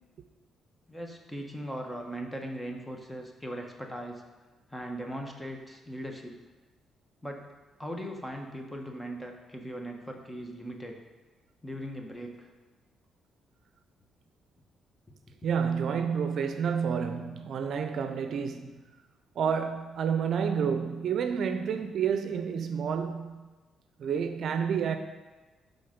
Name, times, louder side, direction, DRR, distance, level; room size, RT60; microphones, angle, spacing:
voice 1, 0.9-4.2 4.7-6.3 7.2-7.5 7.8-11.0 11.6-12.5, equal, 10° left, 1.3 m, -39 dB
voice 2, 15.4-18.8 19.4-23.5 24.0-25.0, right 7 dB, 65° right, 0.6 m, -29 dB
11.5 x 3.9 x 5.2 m
cardioid pair, 90°, 0 cm